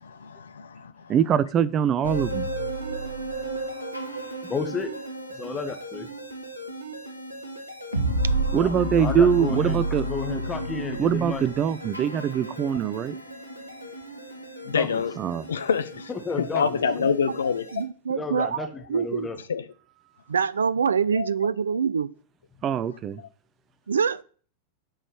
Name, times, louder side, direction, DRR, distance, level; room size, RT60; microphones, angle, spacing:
voice 1, 0.0-1.1 14.7-15.1 15.5-16.1 16.3-17.7 19.5-19.6 21.1-21.3, left 6 dB, 70° left, 0.6 m, -26 dB
voice 2, 1.1-2.5 8.5-10.0 11.0-13.2 15.2-15.4 22.6-23.2, right 8 dB, 30° right, 0.7 m, -23 dB
sound 1, 2.0-17.8, right 1 dB, 85° right, 1.6 m, -32 dB
voice 3, 4.4-4.9 5.3-6.1 8.5-8.7 9.0-11.5 14.7-15.0 16.1-17.0 18.1-19.4, left 4 dB, 15° left, 1.6 m, -32 dB
voice 4, 16.9-17.3 17.7-19.3 20.3-22.1 23.9-24.2, right 6 dB, 70° right, 0.4 m, -25 dB
9.0 x 5.3 x 6.3 m
figure-of-eight pair, 90°, 0 cm